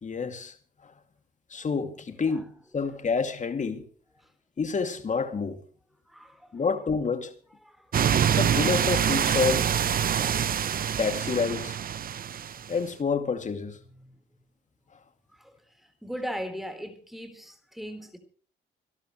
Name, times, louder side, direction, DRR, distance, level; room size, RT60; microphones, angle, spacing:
voice 1, 0.0-0.5 0.8-0.9 1.5-2.5 2.7-3.8 4.6-5.6 6.5-7.3 8.4-9.8 11.0-11.8 12.7-13.8, left 5 dB, 40° left, 2.4 m, -28 dB
voice 2, 6.1-6.6 7.6-8.1 13.8-14.2 15.3-18.2, equal, ahead, 4.1 m, -39 dB
sound 1, 7.9-12.7, right 8 dB, 45° right, 0.8 m, -25 dB
26.5 x 12.5 x 3.1 m
cardioid pair, 90°, 20 cm